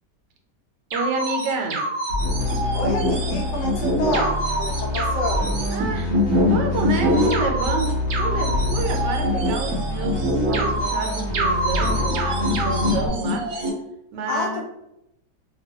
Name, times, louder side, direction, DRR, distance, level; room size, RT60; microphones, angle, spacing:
sound 1, 0.9-13.7, equal, 65° right, 0.9 m, -24 dB
voice 1, 0.9-1.9 5.7-13.5 14.1-14.6, right 4 dB, 80° right, 2 dB, 1.2 m, -29 dB
sound 2, 2.2-13.1, left 2 dB, 50° left, 0.7 m, -27 dB
voice 2, 2.7-5.6 14.3-14.6, left 1 dB, 70° left, 1 dB, 1.1 m, -28 dB
2.9 x 2.3 x 2.7 m, 0.83 s
omnidirectional pair, 1.9 m